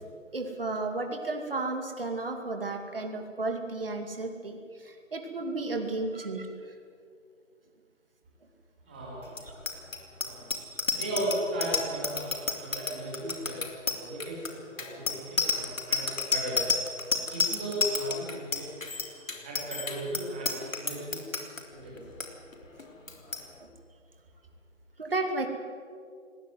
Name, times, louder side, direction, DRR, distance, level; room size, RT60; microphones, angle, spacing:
voice 1, 0.3-6.5 23.6-23.7 25.0-25.5, right 2 dB, 45° right, 4 dB, 2.6 m, -33 dB
voice 2, 8.9-9.4 10.2-10.4 10.9-13.6 14.0-14.5 14.7-16.6 17.3-18.8 19.4-21.3 21.7-22.0, right 1 dB, 5° right, -4 dB, 2.2 m, -36 dB
Bicycle bell, 9.3-21.6 22.0-22.3 22.5-22.8 23.1-23.4, left 4 dB, 90° left, 3.4 m, -30 dB
19.0 x 19.0 x 9.5 m, 2.2 s
figure-of-eight pair, 175°, 38 cm